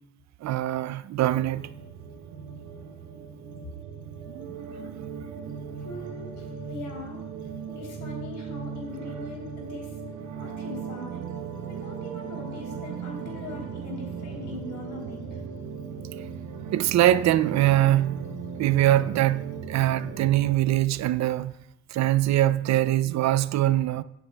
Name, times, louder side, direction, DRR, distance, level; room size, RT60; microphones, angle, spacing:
voice 1, 0.4-1.7 16.7-18.2 18.6-21.5 21.9-24.0, right 13 dB, 65° right, 0.5 m, -23 dB
sound 1, 1.2-20.5, right 6 dB, 80° right, 1.1 m, -38 dB
voice 2, 5.8-7.3 7.7-10.0 10.4-11.2 11.6-15.4, left 2 dB, 85° left, 3.5 m, -41 dB
17.0 x 8.3 x 2.3 m
cardioid pair, 90°, 30 cm